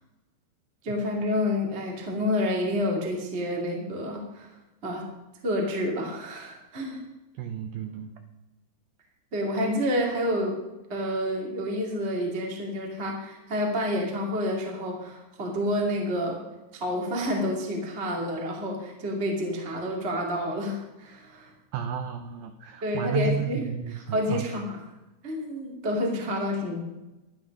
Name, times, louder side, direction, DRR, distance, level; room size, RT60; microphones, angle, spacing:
voice 1, 0.8-4.5 4.8-5.0 5.4-7.0 9.3-10.6 10.9-16.4 16.7-21.5 22.8-24.8 25.2-26.8, left 1 dB, 25° right, -1 dB, 1.6 m, -29 dB
voice 2, 7.4-8.1 21.7-24.5, right 5 dB, 85° right, 7 dB, 2.1 m, -32 dB
12.0 x 11.5 x 5.2 m, 1.0 s
omnidirectional pair, 5.2 m